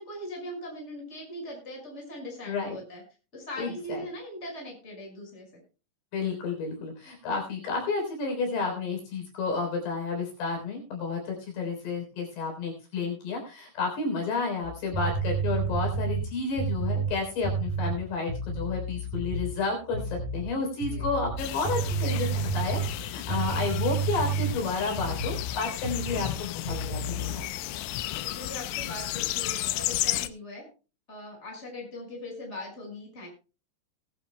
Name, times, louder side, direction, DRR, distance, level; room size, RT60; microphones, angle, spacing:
voice 1, 0.0-3.0 3.3-5.5 20.9-21.1 28.2-30.7 31.1-33.3, left 1 dB, 15° left, 0 dB, 5.4 m, -40 dB
voice 2, 2.4-2.8 3.6-4.0 6.1-27.5, left 4 dB, 60° left, 2 dB, 5.5 m, -31 dB
sound 1, 14.6-19.6 19.9-20.5 20.8-25.5 25.8-26.4 26.7-27.3, right 4 dB, 45° right, 9.0 m, -30 dB
sound 2, 21.4-30.3, left 15 dB, 80° left, 3.1 m, -33 dB
20.5 x 11.5 x 2.2 m, 0.33 s
omnidirectional pair, 5.5 m